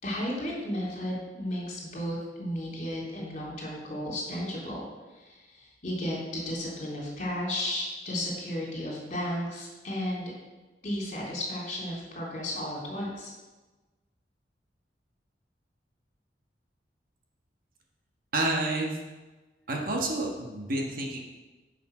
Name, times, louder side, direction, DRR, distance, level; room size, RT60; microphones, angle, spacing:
voice 1, 0.0-4.8 5.1-10.3 10.8-13.3, left 1 dB, 45° left, -4 dB, 3.5 m, -34 dB
voice 2, 18.3-19.0 19.7-21.2, right 2 dB, 55° right, 0 dB, 1.5 m, -29 dB
9.5 x 5.8 x 6.1 m, 1.2 s
head